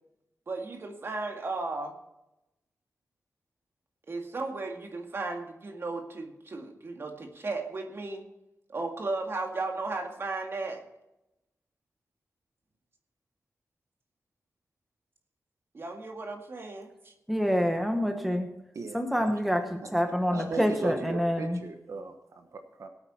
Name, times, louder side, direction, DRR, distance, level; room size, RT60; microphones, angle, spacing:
voice 1, 0.5-1.9 4.1-8.3 8.7-10.8 15.7-17.1 18.2-18.3, right 3 dB, 45° right, 3 dB, 1.9 m, -35 dB
voice 2, 17.3-18.5 18.9-21.6, equal, ahead, 5 dB, 1.1 m, -27 dB
voice 3, 18.7-19.3 19.8-19.9 20.3-22.9, right 3 dB, 60° right, 6 dB, 1.2 m, -38 dB
18.0 x 8.9 x 4.3 m, 0.91 s
wide cardioid pair, 175°, 6 cm